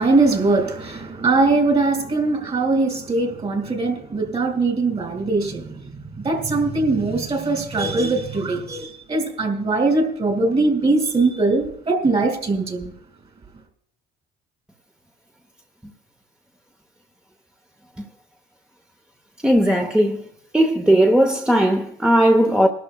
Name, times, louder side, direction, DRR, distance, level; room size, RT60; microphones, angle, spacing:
voice 1, 0.0-12.9, right 3 dB, 35° right, 2.5 m, -21 dB
voice 2, 19.4-20.3 20.5-22.7, right 1 dB, 5° right, 0.8 m, -17 dB
23.5 x 12.0 x 2.3 m
cardioid pair, 110°, 17 cm